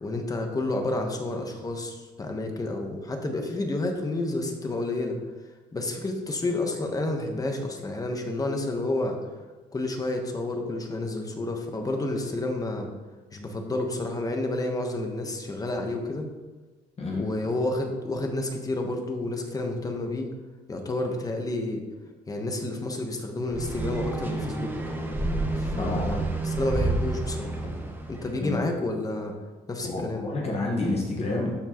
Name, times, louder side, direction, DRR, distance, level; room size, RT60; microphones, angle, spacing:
voice 1, 0.0-5.2 5.7-9.2 9.7-12.9 13.3-16.3 17.1-20.3 20.7-21.8 22.3-24.7 25.6-29.3 29.7-30.3, left 2 dB, 20° left, 3 dB, 1.2 m, -30 dB
sound 1, 23.5-28.4, right 2 dB, 10° right, 1.2 m, -29 dB
voice 2, 25.8-26.2 28.4-28.6 29.8-31.6, left 2 dB, 40° left, -2 dB, 1.4 m, -29 dB
13.0 x 4.5 x 3.1 m, 1.3 s
cardioid pair, 110°, 17 cm